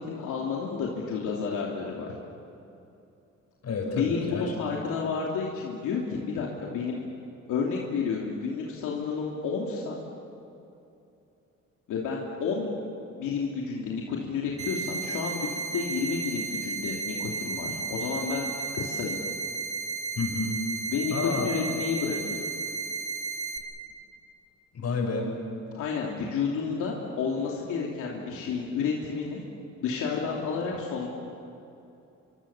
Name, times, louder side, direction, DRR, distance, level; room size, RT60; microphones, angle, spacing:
voice 1, 0.1-2.1 3.9-7.0 7.5-10.0 11.9-12.7 13.1-15.5 15.7-19.2 20.9-22.4 25.7-29.4 29.8-31.1, left 5 dB, 90° left, -2 dB, 2.9 m, -31 dB
voice 2, 3.6-4.5 20.2-20.6 21.1-21.5 24.7-25.3, left 4 dB, 55° left, 1 dB, 7.2 m, -29 dB
sound 1, 14.6-23.6, right 5 dB, 50° right, 4.1 m, -34 dB
26.5 x 25.0 x 7.2 m, 2.7 s
cardioid pair, 90°, 30 cm